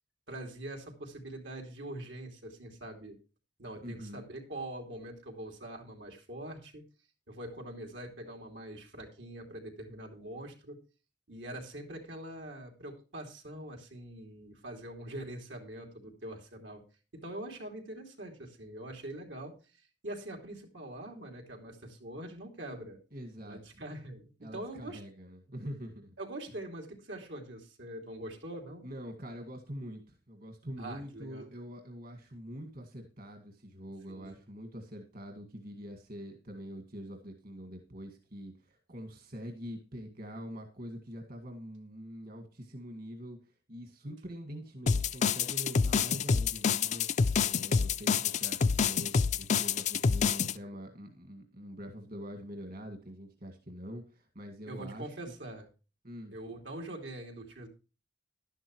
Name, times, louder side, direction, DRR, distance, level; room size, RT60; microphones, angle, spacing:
voice 1, 0.3-3.2 3.6-6.8 7.3-10.8 11.3-16.8 17.1-19.6 20.0-23.0 23.4-25.0 26.2-28.9 30.8-31.5 34.1-34.4 54.7-55.7 56.3-57.7, right 1 dB, 85° right, 2 dB, 2.9 m, -43 dB
voice 2, 3.8-4.2 23.1-23.8 24.4-26.1 28.8-47.1 47.4-55.2 56.0-56.3, equal, 55° right, 4 dB, 2.0 m, -44 dB
sound 1, 44.9-50.5, left 5 dB, 40° left, 0.4 m, -27 dB
11.5 x 11.5 x 3.1 m, 0.32 s
head